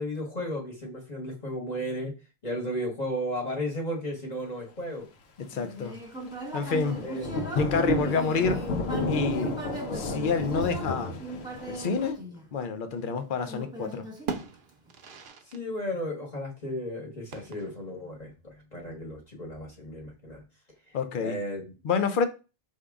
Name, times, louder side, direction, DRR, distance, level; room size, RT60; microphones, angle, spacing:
voice 1, 0.0-2.1 2.4-5.1 7.0-7.3 8.0-8.2 15.5-20.4 20.9-21.0 21.2-21.7, equal, 40° left, 1.2 m, -34 dB
voice 2, 5.4-6.0 6.5-7.0 7.6-8.7 9.1-9.6 9.9-11.1 11.7-12.2 12.5-14.1 20.9-21.4 21.8-22.2, left 5 dB, 60° left, 0.7 m, -28 dB
Human voice, 5.5-12.9 13.5-14.9, right 1 dB, 5° right, 0.9 m, -39 dB
Thunder / Rain, 6.6-12.1, left 2 dB, 90° left, 1.0 m, -32 dB
sound 1, 13.0-13.7 14.0-15.7 15.9-16.0 17.3-18.0, right 6 dB, 60° right, 0.7 m, -40 dB
5.0 x 2.7 x 3.5 m
omnidirectional pair, 1.0 m